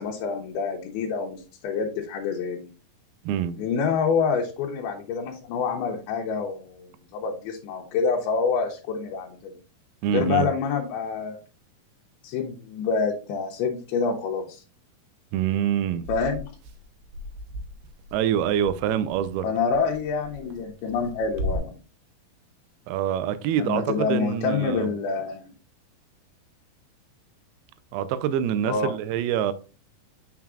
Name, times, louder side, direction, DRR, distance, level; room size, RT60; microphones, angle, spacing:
voice 1, 0.0-2.7 3.6-9.6 10.1-11.4 12.2-14.6 16.1-16.5 19.4-21.8 23.6-25.5 28.7-28.9, left 5 dB, 85° left, 2.8 m, -27 dB
voice 2, 10.0-10.5 15.3-16.1 18.1-19.5 22.9-24.9 27.9-29.5, right 10 dB, 90° right, 2.5 m, -25 dB
sound 1, 16.0-21.6, equal, 70° right, 2.3 m, -37 dB
7.3 x 5.9 x 2.4 m
omnidirectional pair, 4.4 m